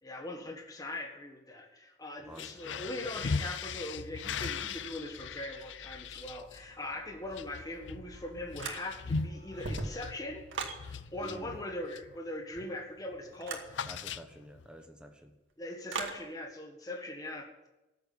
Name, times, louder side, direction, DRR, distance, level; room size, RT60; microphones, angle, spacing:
voice 1, 0.0-10.4 10.8-13.7 15.6-17.7, left 1 dB, 20° left, 2 dB, 1.6 m, -41 dB
sound 1, 2.2-12.2 12.5-12.8 13.1-14.7, left 5 dB, 75° left, 0.6 m, -40 dB
voice 2, 2.3-2.8 11.2-11.6 13.9-15.3, equal, 5° right, 4 dB, 1.2 m, -49 dB
sound 2, 4.3-10.0, left 2 dB, 40° left, 5.0 m, -57 dB
sound 3, 8.6-9.2 9.5-10.8 13.4-13.7 15.9-16.2, right 3 dB, 85° right, 2.1 m, -38 dB
14.0 x 8.3 x 8.9 m, 1.0 s
head